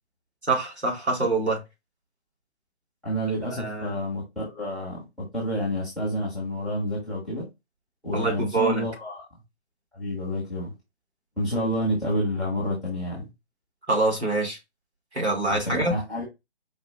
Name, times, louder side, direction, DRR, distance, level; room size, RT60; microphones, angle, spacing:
voice 1, 0.5-1.6 3.6-3.9 8.1-8.8 13.9-14.6 15.1-15.9, right 3 dB, 80° right, 3.0 m, -25 dB
voice 2, 3.0-7.5 8.0-9.2 9.9-10.7 11.4-13.2 15.5-16.2, equal, ahead, 0.7 m, -29 dB
4.8 x 2.5 x 3.8 m
figure-of-eight pair, 145°, 33 cm